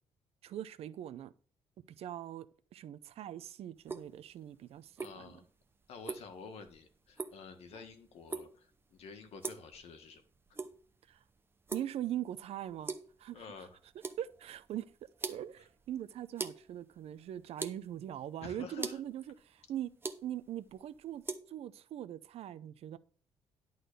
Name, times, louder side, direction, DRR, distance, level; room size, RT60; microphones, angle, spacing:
voice 1, 0.4-1.3 2.0-2.5 2.7-5.2 11.1-11.2 11.7-12.9 13.2-13.4 14.2-14.9 15.3-19.9 20.2-21.2 21.5-23.0, right 11 dB, 70° right, 0.6 m, -41 dB
sound 1, 3.8-21.4, right 4 dB, 20° right, 0.7 m, -45 dB
voice 2, 5.0-5.5 5.9-10.2 13.3-13.8 18.4-19.0, left 5 dB, 75° left, 1.7 m, -49 dB
11.0 x 4.0 x 6.7 m
cardioid pair, 150°, 11 cm